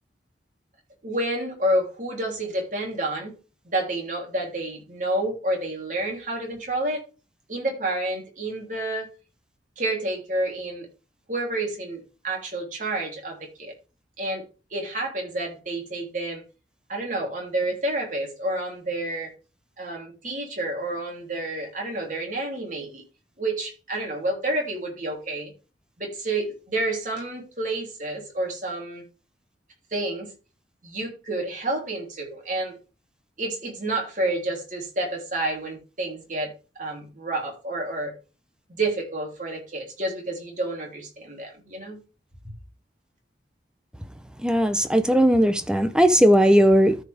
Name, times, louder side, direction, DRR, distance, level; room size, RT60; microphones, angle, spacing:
voice 1, 1.0-3.3 3.7-7.0 7.5-9.1 9.8-10.9 11.3-13.7 14.2-14.4 14.7-16.4 16.9-19.3 19.8-23.0 23.4-25.5 26.0-29.0 29.9-30.3 30.8-32.8 33.4-36.5 36.8-38.1 38.7-42.0, right 1 dB, 45° right, 3.1 m, -29 dB
voice 2, 44.4-47.0, equal, 5° right, 0.6 m, -18 dB
13.5 x 5.0 x 3.4 m
head